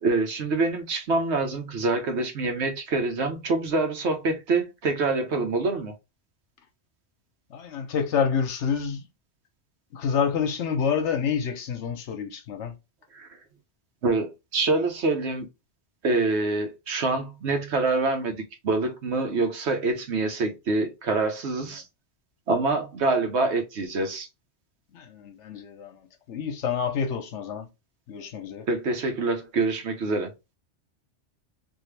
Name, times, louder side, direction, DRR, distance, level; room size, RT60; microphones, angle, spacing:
voice 1, 0.0-5.9 13.1-13.3 14.0-15.5 16.0-18.4 18.6-21.8 22.5-24.3 28.7-30.3, right 3 dB, 70° right, 1.1 m, -26 dB
voice 2, 7.5-9.0 9.9-12.7 24.9-26.0 26.3-27.7 28.1-28.7, left 7 dB, 80° left, 1.0 m, -28 dB
3.5 x 2.6 x 3.2 m
omnidirectional pair, 1.2 m